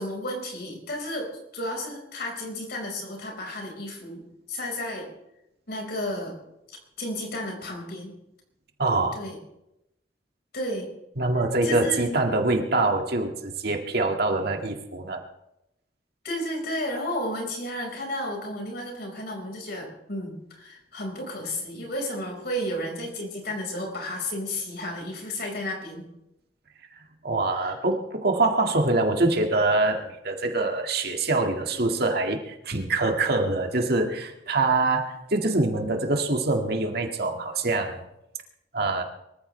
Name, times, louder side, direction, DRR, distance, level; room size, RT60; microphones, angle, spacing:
voice 1, 0.0-5.1 5.7-6.4 7.0-8.1 9.1-9.4 10.5-10.9 11.6-12.1 16.2-26.1 27.5-27.7, left 1 dB, 60° left, 2 dB, 5.0 m, -32 dB
voice 2, 8.8-9.2 11.2-15.2 27.2-38.0 38.7-39.0, right 2 dB, 60° right, 3 dB, 2.0 m, -24 dB
24.0 x 14.5 x 3.3 m, 0.84 s
head